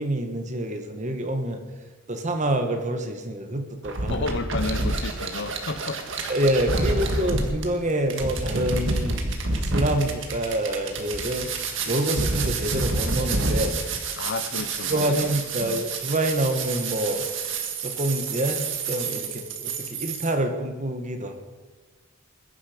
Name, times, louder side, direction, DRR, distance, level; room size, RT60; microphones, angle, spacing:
voice 1, 0.0-1.6 2.1-4.2 6.3-9.2 9.6-11.5 11.9-13.8 14.9-17.2 17.8-21.3, right 1 dB, 35° right, 5 dB, 1.6 m, -27 dB
sound 1, 3.8-20.3, right 3 dB, 60° right, 1.9 m, -28 dB
voice 2, 4.1-6.0 6.7-7.4 14.2-15.3 15.6-15.8, left 3 dB, 55° left, 12 dB, 0.8 m, -32 dB
21.0 x 10.5 x 5.2 m, 1.3 s
head